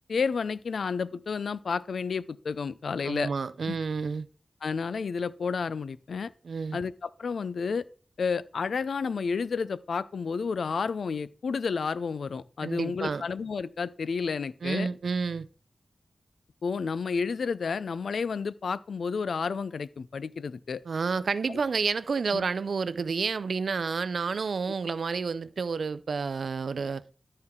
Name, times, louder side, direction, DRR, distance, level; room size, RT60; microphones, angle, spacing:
voice 1, 0.1-3.3 3.6-3.8 4.6-6.3 6.7-7.8 8.2-14.9 16.6-20.8 21.5-21.6 22.3-22.5, left 5 dB, 90° left, 0.4 m, -31 dB
voice 2, 3.0-4.3 6.4-6.8 12.6-13.2 14.6-15.5 20.9-27.0, right 5 dB, 80° right, 0.4 m, -30 dB
13.5 x 4.5 x 3.7 m
cardioid pair, 50°, 0 cm